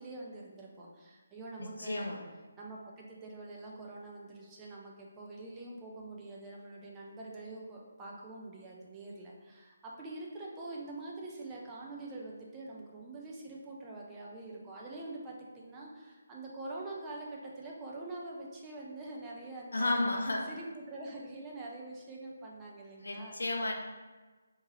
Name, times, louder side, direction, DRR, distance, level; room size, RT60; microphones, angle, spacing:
voice 1, 0.0-2.2 2.6-23.7, right 2 dB, 15° right, -3 dB, 0.6 m, -45 dB
voice 2, 1.6-2.3 19.7-20.5 23.0-23.7, left 2 dB, 65° left, 2 dB, 0.6 m, -32 dB
3.6 x 2.8 x 4.2 m, 1.3 s
figure-of-eight pair, 145°, 0 cm